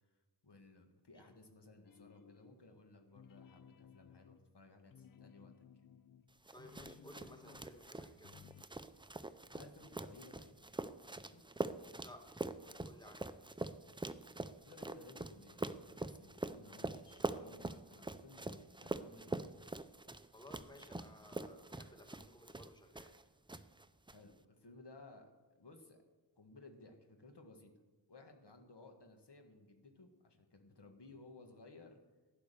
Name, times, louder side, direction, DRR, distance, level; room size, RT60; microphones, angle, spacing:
voice 1, 0.4-5.9 9.5-10.6 11.2-11.4 14.6-19.5 24.1-26.0 26.4-27.7 28.1-32.0, left 2 dB, 65° left, 4 dB, 1.6 m, -59 dB
sound 1, 1.8-2.7 3.1-7.7 8.1-8.6, left 8 dB, 50° left, 0.5 m, -60 dB
voice 2, 6.5-8.3 12.0-12.2 12.6-13.3 20.3-23.1, left 1 dB, 10° left, 3 dB, 1.7 m, -57 dB
sound 2, 6.5-23.2 23.5-24.1, right 2 dB, 10° right, 0.5 m, -44 dB
11.5 x 9.4 x 6.8 m, 1.3 s
wide cardioid pair, 55°, 44 cm